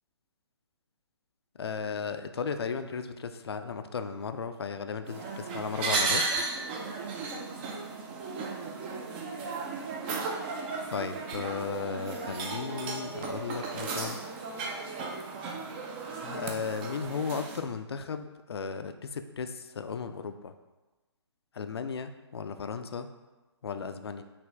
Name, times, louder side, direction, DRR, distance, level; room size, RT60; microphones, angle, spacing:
voice 1, 1.6-6.2 10.9-14.2 16.1-20.5 21.5-23.1 23.6-24.2, left 5 dB, 65° left, 9 dB, 0.4 m, -35 dB
sound 1, 5.1-17.6, right 4 dB, 25° right, 0.4 m, -35 dB
5.0 x 2.7 x 3.3 m, 1.2 s
figure-of-eight pair, 130°, 14 cm